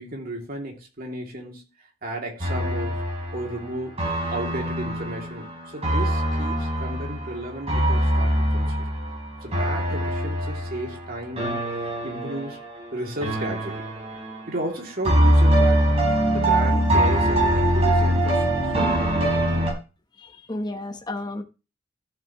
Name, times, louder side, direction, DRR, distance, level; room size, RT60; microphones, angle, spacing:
voice 1, 0.0-1.7 2.0-3.0 3.3-3.9 4.3-8.8 9.4-11.6 12.0-12.6 12.9-13.8 14.5-15.9 16.3-18.6, right 1 dB, 50° right, 2.8 m, -33 dB
sound 1, 2.4-12.9 13.2-14.6 15.0-19.7, right 1 dB, 30° right, 4.5 m, -23 dB
voice 2, 20.2-21.4, left 1 dB, 20° left, 1.0 m, -32 dB
13.5 x 7.5 x 3.1 m
head